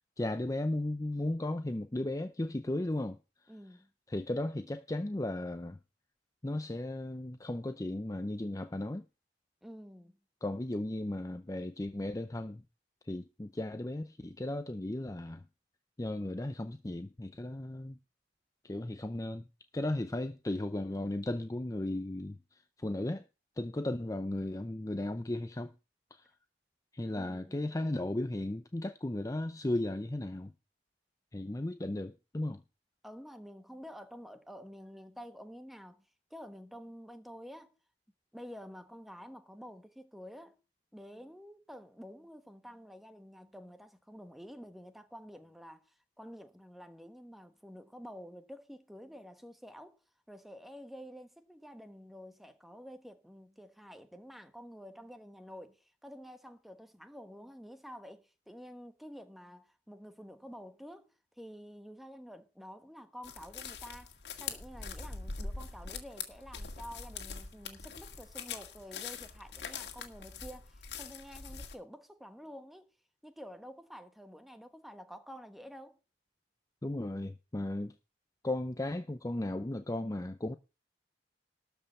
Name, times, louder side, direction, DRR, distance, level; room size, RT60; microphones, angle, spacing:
voice 1, 0.2-3.2 4.1-5.8 6.4-9.0 10.4-12.6 13.0-15.4 16.0-18.0 18.6-19.5 19.7-23.3 23.6-25.7 26.1-26.3 26.9-30.5 31.3-32.6 76.8-78.0 78.4-80.6, left 1 dB, 20° left, 0.6 m, -35 dB
voice 2, 3.5-3.9 9.6-10.2 27.1-27.7 33.0-37.7 38.3-40.6 40.9-50.0 50.3-72.9 73.2-76.0, equal, ahead, 1.2 m, -49 dB
sound 1, 63.2-71.8, left 5 dB, 65° left, 1.9 m, -43 dB
13.0 x 5.5 x 7.1 m
head